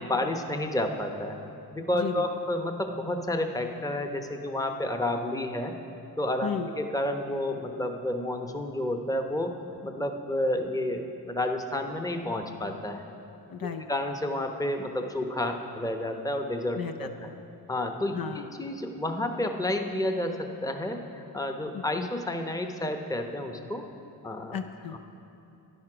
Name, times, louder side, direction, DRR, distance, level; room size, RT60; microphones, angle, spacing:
voice 1, 0.0-1.4 1.7-5.7 6.2-9.6 9.8-13.0 13.9-17.1 17.7-23.9 24.2-24.6, left 1 dB, 10° left, 5 dB, 0.9 m, -30 dB
voice 2, 1.9-2.2 6.4-6.7 13.5-13.8 16.7-17.4 18.1-18.5 21.7-22.1 24.5-25.0, left 7 dB, 55° left, 6 dB, 0.7 m, -35 dB
12.5 x 10.5 x 5.0 m, 2.9 s
cardioid pair, 80°, 41 cm